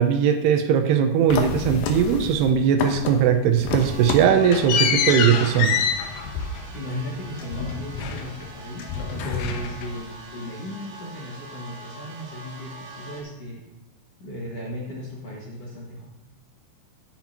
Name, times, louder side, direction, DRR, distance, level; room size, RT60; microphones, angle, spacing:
voice 1, 0.0-5.7, right 8 dB, 80° right, 7 dB, 2.6 m, -19 dB
sound 1, 1.3-2.5 2.8-3.3 3.6-8.5 8.8-10.1, left 6 dB, 80° left, 2.9 m, -27 dB
sound 2, 3.7-13.2, right 1 dB, 50° right, 2.9 m, -43 dB
voice 2, 6.7-8.9 9.2-13.6 14.2-16.0, left 1 dB, 50° left, -5 dB, 2.1 m, -35 dB
10.5 x 10.0 x 2.9 m, 0.99 s
omnidirectional pair, 4.9 m